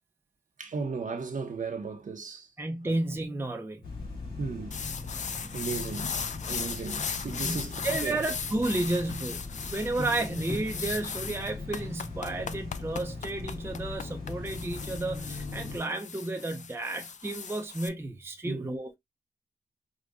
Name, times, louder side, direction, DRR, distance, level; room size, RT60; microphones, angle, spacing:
voice 1, 0.6-2.5 2.8-2.9 4.4-4.8 5.5-6.1 6.5-8.2 10.0-10.1 18.5-18.7, right 4 dB, 50° right, 0.8 m, -35 dB
voice 2, 2.6-3.8 6.4-6.5 7.3-7.6 7.8-19.0, right 2 dB, 15° right, 0.5 m, -32 dB
sound 1, 3.8-15.8, left 3 dB, 60° left, 1.8 m, -39 dB
sound 2, 4.7-17.9, left 6 dB, 45° left, 0.4 m, -37 dB
5.0 x 2.2 x 2.5 m
wide cardioid pair, 130°, 17 cm